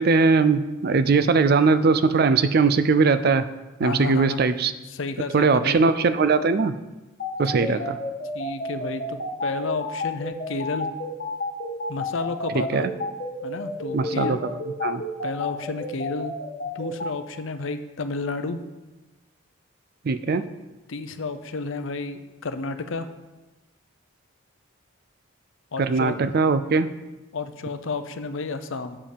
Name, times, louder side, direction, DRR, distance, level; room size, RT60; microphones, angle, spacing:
voice 1, 0.0-3.5 3.8-4.7 5.3-6.7 7.4-8.0 12.7-12.9 13.9-14.4 14.8-15.0 20.0-20.5 25.8-26.9, right 4 dB, 45° right, 12 dB, 0.4 m, -20 dB
voice 2, 3.8-4.5 4.9-5.8 7.5-7.9 8.3-10.9 11.9-13.0 13.4-14.4 15.2-16.3 16.7-18.6 20.9-23.1 25.7-26.1 27.3-29.0, left 3 dB, 65° left, 9 dB, 0.6 m, -31 dB
sound 1, 7.2-17.1, left 2 dB, 45° left, 1.5 m, -30 dB
7.3 x 5.3 x 6.6 m, 1.1 s
head